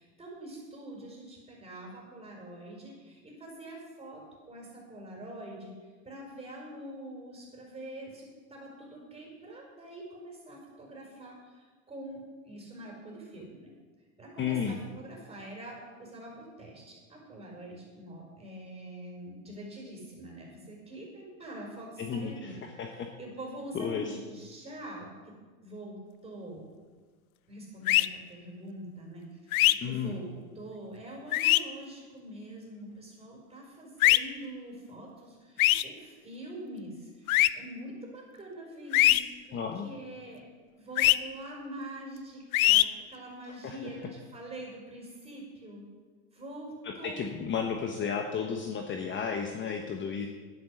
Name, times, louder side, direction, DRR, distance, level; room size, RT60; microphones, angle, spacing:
voice 1, 0.2-2.9 3.4-4.2 4.5-4.6 4.9-5.7 6.1-8.1 8.5-11.3 11.9-12.2 12.5-13.5 14.2-15.8 16.1-16.8 17.3-22.6 23.2-25.1 25.6-26.0 26.2-26.6 27.5-28.0 28.3-29.2 29.8-35.1 35.8-35.9 36.2-36.9 37.6-39.2 39.8-40.4 40.8-45.8 46.4-46.7 47.0-47.2, right 1 dB, 15° right, -1 dB, 4.9 m, -44 dB
voice 2, 14.4-14.8 22.0-23.1 23.7-24.2 29.8-30.1 39.5-39.9 43.6-43.8 46.8-50.3, left 6 dB, 25° left, 4 dB, 1.1 m, -33 dB
sound 1, 27.9-28.1 29.5-29.7 31.3-31.6 34.0-34.2 35.6-35.8 37.3-37.5 38.9-39.2 41.0-41.2 42.5-42.8, left 16 dB, 80° left, 0.6 m, -21 dB
11.0 x 10.0 x 6.4 m, 1.4 s
hypercardioid pair, 115°, 42 cm